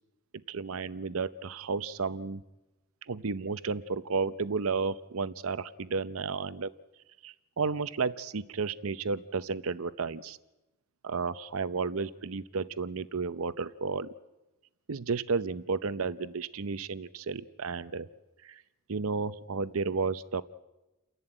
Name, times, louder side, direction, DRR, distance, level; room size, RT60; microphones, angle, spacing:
voice 1, 0.5-2.4 3.1-6.7 7.2-10.4 11.0-14.1 14.9-18.1 18.4-18.6 18.9-20.4, right 4 dB, 70° right, 14 dB, 0.7 m, -32 dB
29.5 x 11.5 x 8.9 m, 1.0 s
head